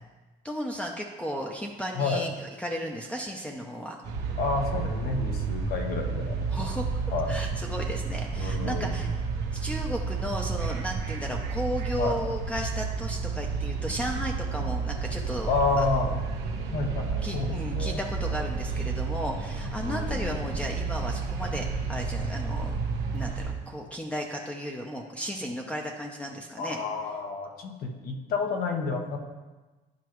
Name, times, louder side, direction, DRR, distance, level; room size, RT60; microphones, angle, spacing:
voice 1, 0.4-2.3 2.6-4.0 6.5-7.0 7.3-9.1 9.5-15.5 15.8-16.2 17.2-22.8 23.1-26.8, equal, 5° left, 1 dB, 0.7 m, -34 dB
sound 1, 4.0-23.5, right 5 dB, 85° right, 1.0 m, -31 dB
voice 2, 4.4-6.7 7.1-7.4 8.3-9.0 12.0-12.2 15.5-16.1 16.7-18.0 19.8-20.3 26.5-29.2, left 4 dB, 65° left, 3 dB, 1.2 m, -30 dB
11.0 x 4.6 x 3.1 m, 1.2 s
cardioid pair, 110°, 17 cm